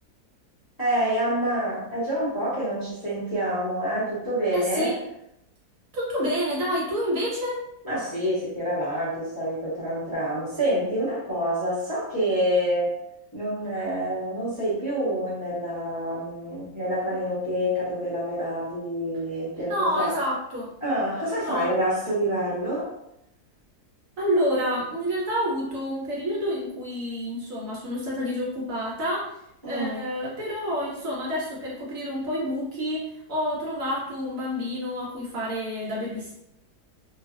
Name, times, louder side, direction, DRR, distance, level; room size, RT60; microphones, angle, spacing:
voice 1, 0.8-4.9 7.8-12.9 13.3-20.1 20.8-22.9 29.6-30.0, equal, 20° left, -10 dB, 0.7 m, -27 dB
voice 2, 4.5-4.9 5.9-7.6 19.6-20.7 21.3-21.7 24.2-29.4 29.7-36.3, equal, 65° right, -4 dB, 1.0 m, -28 dB
2.6 x 2.4 x 2.4 m, 0.79 s
omnidirectional pair, 1.7 m